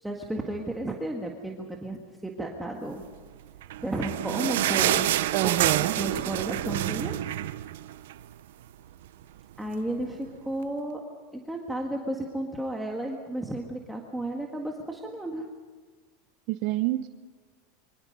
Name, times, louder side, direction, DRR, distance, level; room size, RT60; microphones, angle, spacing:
voice 1, 0.0-3.0 3.8-5.1 5.4-5.5 6.0-7.2 9.6-11.0 11.3-15.4, right 1 dB, 5° right, 0 dB, 1.8 m, -33 dB
sound 1, 3.6-8.3 8.7-8.8 9.0-9.2 9.9-10.0, right 13 dB, 85° right, 0.8 m, -28 dB
voice 2, 5.3-6.0 16.5-17.1, right 16 dB, 55° right, 11 dB, 0.7 m, -27 dB
25.0 x 24.0 x 5.4 m, 1.4 s
supercardioid pair, 135°, 0 cm